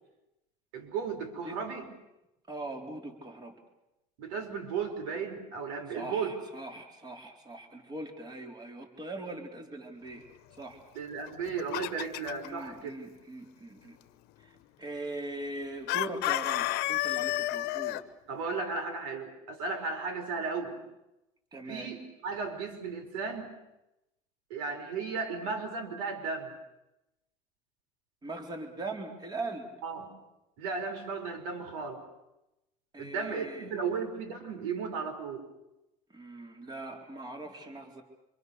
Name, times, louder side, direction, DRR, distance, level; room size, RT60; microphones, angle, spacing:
voice 1, 0.7-1.9 4.2-6.4 10.9-13.0 18.3-20.8 21.7-23.5 24.5-26.5 29.8-30.1 30.6-32.0 33.0-35.5, right 5 dB, 90° right, 6 dB, 4.1 m, -35 dB
voice 2, 2.5-3.5 5.9-10.2 10.6-10.8 12.4-14.0 14.4-14.5 14.8-18.0 21.5-21.9 28.2-29.7 32.9-33.7 36.1-38.0, right 2 dB, 25° right, 4 dB, 4.1 m, -41 dB
Chicken rooster, 11.3-12.5 15.9-18.0, left 17 dB, 70° left, 1.1 m, -30 dB
26.5 x 25.0 x 6.8 m, 0.93 s
supercardioid pair, 110°, 17 cm